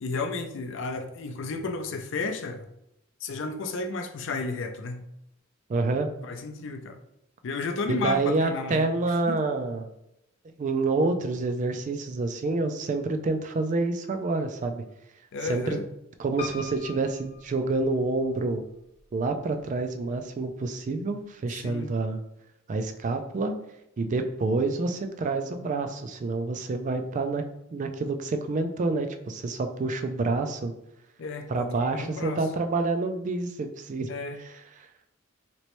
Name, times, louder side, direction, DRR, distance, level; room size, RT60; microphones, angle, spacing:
voice 1, 0.0-2.7 3.2-5.1 6.2-7.0 7.4-8.9 9.3-9.4 15.3-15.8 21.5-21.9 31.2-32.4 34.1-34.4, left 3 dB, 60° left, 0.4 m, -33 dB
voice 2, 5.7-6.1 7.9-9.9 10.6-14.8 15.4-15.8 16.2-18.6 19.1-22.2 22.7-23.5 24.0-27.4 27.7-30.7 31.5-34.1 34.8-34.9, right 3 dB, 35° right, 0.3 m, -28 dB
Piano, 16.4-18.4 19.0-19.7 20.0-20.1 20.3-20.4, left 4 dB, 30° left, 1.0 m, -42 dB
3.1 x 3.0 x 3.0 m
head